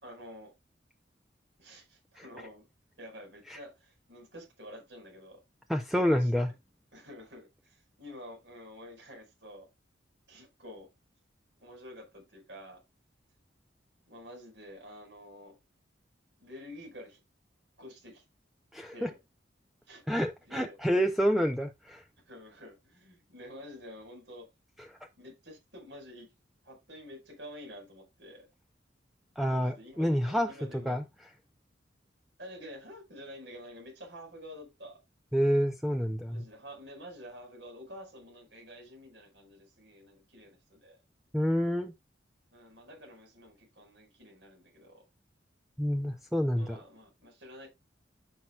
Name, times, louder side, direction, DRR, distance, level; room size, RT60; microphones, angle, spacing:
voice 1, 0.0-0.5 1.6-2.7 3.0-5.4 6.1-6.4 6.9-9.7 10.3-10.9 11.6-12.8 14.1-15.6 16.4-17.2 17.8-18.2 18.9-19.2 19.8-20.0 20.5-20.8 22.3-24.5 25.2-26.3 26.6-28.5 29.5-31.0 32.4-35.0 36.3-41.0 42.5-45.1 46.5-47.7, equal, 65° right, 5.3 m, -49 dB
voice 2, 5.7-6.5 18.7-19.1 20.1-22.0 29.4-30.5 30.9-31.0 35.3-36.4 41.3-41.9 45.8-46.8, equal, ahead, 0.6 m, -28 dB
14.0 x 5.9 x 2.4 m
head